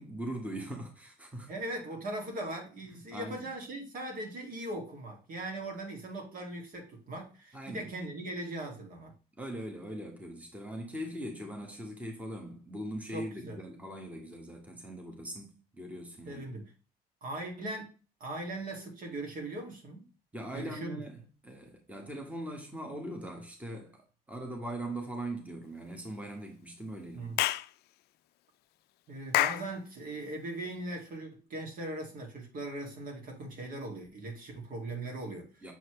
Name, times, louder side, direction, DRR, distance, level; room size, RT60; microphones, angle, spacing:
voice 1, 0.0-1.5 2.8-3.5 7.5-7.9 9.4-16.5 20.3-27.4 35.6-35.7, right 1 dB, 10° right, 1.5 m, -41 dB
voice 2, 1.5-9.1 13.1-13.6 16.3-16.7 17.2-17.9 18.2-20.1 20.5-21.0 27.1-27.4 29.1-35.5, right 1 dB, 55° right, 2.4 m, -39 dB
Clapping / Chirp tweet, 27.4-27.7 29.3-29.7, left 15 dB, 75° left, 0.4 m, -27 dB
7.0 x 4.3 x 3.2 m
cardioid pair, 110°, 17 cm